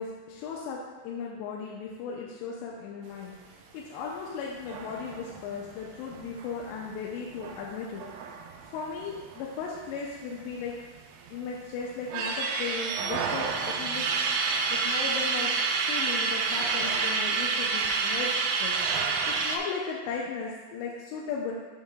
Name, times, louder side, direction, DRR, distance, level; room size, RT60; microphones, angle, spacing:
voice 1, 0.0-3.4 3.7-8.0 8.7-10.8 11.3-14.1 14.7-15.5 15.9-18.8 19.3-21.5, left 5 dB, 85° left, -3 dB, 2.8 m, -36 dB
sound 1, 4.6-9.8 10.0-10.1 10.4-11.4 11.8-19.6, right 5 dB, 80° right, 2.6 m, -29 dB
9.0 x 6.5 x 2.5 m, 1.3 s
omnidirectional pair, 5.1 m